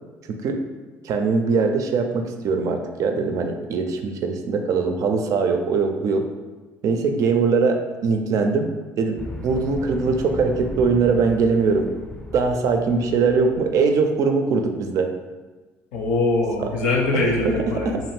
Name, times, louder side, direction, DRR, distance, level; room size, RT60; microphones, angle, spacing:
voice 1, 1.0-6.3 6.8-11.9 12.3-15.1 16.6-16.7 17.1-18.0, right 4 dB, 55° right, 5 dB, 0.4 m, -22 dB
sound 1, 9.2-14.0, right 1 dB, 15° left, 0.5 m, -36 dB
voice 2, 15.9-18.0, left 2 dB, 85° left, 0 dB, 0.6 m, -22 dB
2.5 x 2.5 x 3.2 m, 1.3 s
supercardioid pair, 80°, 7 cm